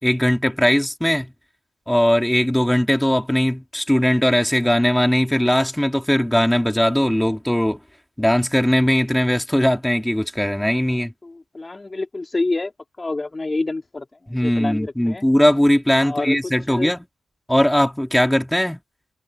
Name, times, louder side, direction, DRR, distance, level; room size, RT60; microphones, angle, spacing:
voice 1, 0.0-1.3 1.9-7.8 8.2-11.1 14.3-17.0 17.5-18.8, equal, 5° left, 3.7 m, -19 dB
voice 2, 11.2-12.7 13.0-14.0 14.4-15.3 16.0-16.4 16.7-16.9, left 2 dB, 25° left, 4.0 m, -27 dB
cardioid pair, 65°, 0 cm